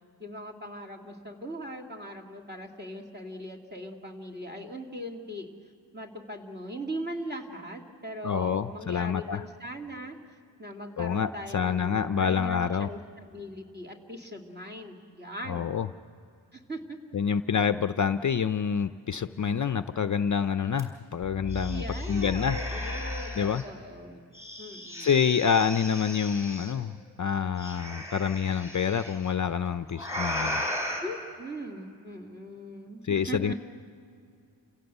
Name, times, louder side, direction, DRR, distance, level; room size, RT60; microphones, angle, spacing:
voice 1, 0.2-5.5 5.9-10.2 10.6-15.7 16.5-17.0 21.7-24.2 24.6-25.1 31.0-33.5, equal, 25° right, 1 dB, 2.6 m, -40 dB
voice 2, 8.2-9.4 11.0-12.9 15.5-15.9 17.1-22.6 23.4-23.6 25.0-30.7 33.0-33.5, left 7 dB, 45° left, 11 dB, 0.5 m, -27 dB
sound 1, 20.8-20.9 21.2-23.6 24.3-26.7 27.6-29.1 29.9-31.0, left 1 dB, 5° right, 5.2 m, -35 dB
29.0 x 16.5 x 8.0 m, 2.4 s
wide cardioid pair, 110°, 43 cm